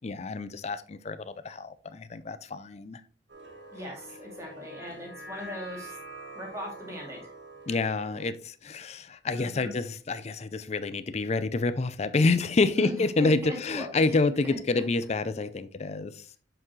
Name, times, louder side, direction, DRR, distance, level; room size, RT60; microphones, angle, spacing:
voice 1, 0.0-3.0 7.7-16.3, left 3 dB, 35° left, 0.4 m, -28 dB
sound 1, 3.3-8.3, right 1 dB, 65° right, 1.6 m, -45 dB
voice 2, 3.7-6.0 6.3-7.3 9.4-9.7 12.8-14.6, left 1 dB, 15° right, 2.2 m, -39 dB
7.0 x 6.0 x 3.1 m
head